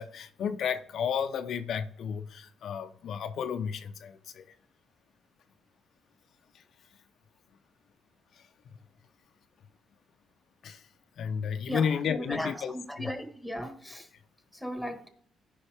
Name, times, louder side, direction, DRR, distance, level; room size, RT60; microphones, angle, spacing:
voice 1, 0.0-4.5 6.5-6.6 8.3-8.5 10.6-10.9 11.2-13.1, left 7 dB, 65° left, 0.7 m, -32 dB
voice 2, 11.6-14.1 14.5-15.1, equal, ahead, 1.7 m, -37 dB
14.5 x 5.4 x 3.5 m
cardioid pair, 90°, 0 cm